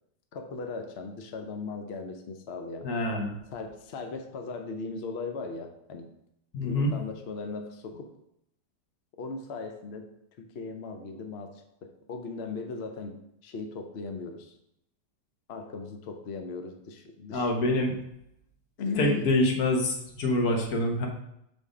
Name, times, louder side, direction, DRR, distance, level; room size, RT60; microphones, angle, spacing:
voice 1, 0.3-2.9 3.5-6.1 6.6-8.1 9.2-14.5 15.5-17.5 18.8-19.3, left 4 dB, 75° left, 5 dB, 0.6 m, -38 dB
voice 2, 2.8-3.3 6.5-6.9 17.3-17.9 19.0-21.1, left 1 dB, 55° left, 1 dB, 1.5 m, -26 dB
6.4 x 3.5 x 4.9 m, 0.78 s
omnidirectional pair, 2.0 m